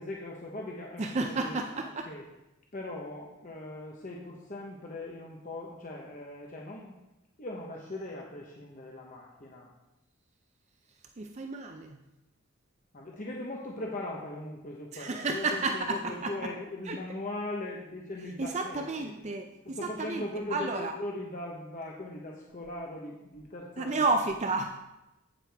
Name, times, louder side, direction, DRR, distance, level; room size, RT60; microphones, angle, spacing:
voice 1, 0.0-2.2 2.7-6.9 7.4-9.7 12.9-19.1 19.6-24.0, left 1 dB, 40° left, -1 dB, 0.9 m, -40 dB
voice 2, 1.0-2.1 11.2-12.0 14.9-16.3 16.9-17.0 18.4-20.9 23.8-24.8, right 3 dB, 30° right, 5 dB, 0.4 m, -31 dB
9.2 x 8.4 x 3.5 m, 0.98 s
head